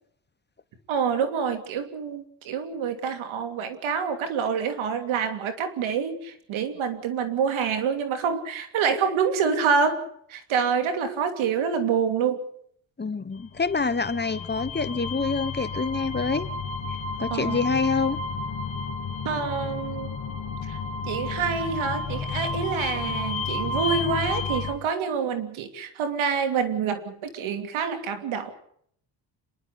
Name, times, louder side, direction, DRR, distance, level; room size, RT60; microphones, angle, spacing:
voice 1, 0.9-10.0 10.3-12.4 17.3-17.6 19.2-20.2 20.6-20.8 21.1-28.5, right 6 dB, 90° right, 8 dB, 2.9 m, -27 dB
voice 2, 13.0-16.5 17.2-18.2, left 4 dB, 20° left, 13 dB, 1.2 m, -26 dB
sound 1, 13.7-24.7, left 4 dB, 70° left, 2.6 m, -31 dB
26.5 x 11.0 x 9.7 m, 0.65 s
cardioid pair, 90°, 47 cm